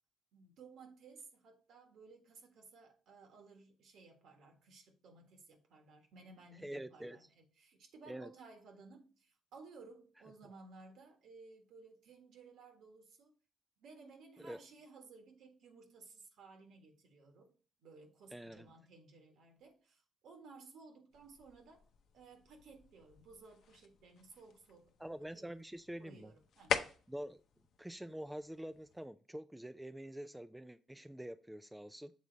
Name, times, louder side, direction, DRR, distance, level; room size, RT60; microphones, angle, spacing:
voice 1, 0.3-13.3 13.8-17.5 17.8-21.8 22.1-24.9 25.3-25.5 26.0-26.8, right 4 dB, 75° right, 1.6 m, -58 dB
voice 2, 6.6-7.2 8.1-8.3 14.4-14.6 18.3-18.7 25.0-26.3 27.1-27.4 27.8-32.1, right 1 dB, 5° right, 0.3 m, -46 dB
sound 1, 21.1-29.1, left 7 dB, 70° left, 0.7 m, -45 dB
7.5 x 3.7 x 4.0 m
cardioid pair, 90°, 0 cm